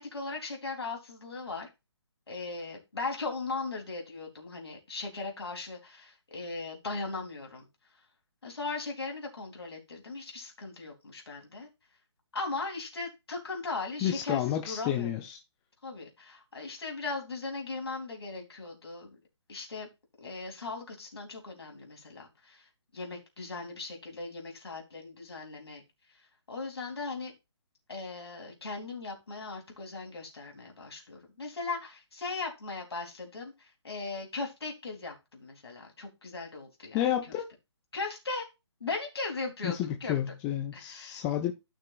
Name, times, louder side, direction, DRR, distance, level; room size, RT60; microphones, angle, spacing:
voice 1, 0.0-1.7 2.3-7.7 8.4-11.7 12.3-15.1 15.8-19.2 19.5-19.9 20.2-22.7 22.9-25.8 26.5-27.3 27.9-37.1 37.9-38.5 38.8-40.3 40.7-41.2, left 3 dB, 60° left, 3.3 m, -38 dB
voice 2, 14.0-15.4 36.9-37.5 39.6-41.5, left 11 dB, 10° left, 0.4 m, -30 dB
13.0 x 6.1 x 2.4 m
figure-of-eight pair, 140°, 15 cm